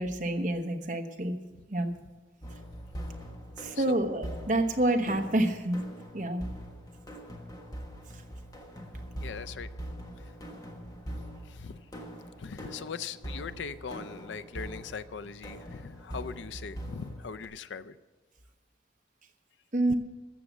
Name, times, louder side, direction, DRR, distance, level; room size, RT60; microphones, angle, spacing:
voice 1, 0.0-1.4 1.7-1.9 3.6-5.9 6.1-6.4 19.7-19.9, right 1 dB, 45° right, 5 dB, 1.0 m, -28 dB
sound 1, 2.4-17.5, equal, 20° left, 1.3 m, -43 dB
voice 2, 9.2-9.7 11.5-11.8 12.4-18.0 19.9-20.0, left 5 dB, 85° left, 15 dB, 0.5 m, -40 dB
14.5 x 7.2 x 7.1 m, 1.3 s
head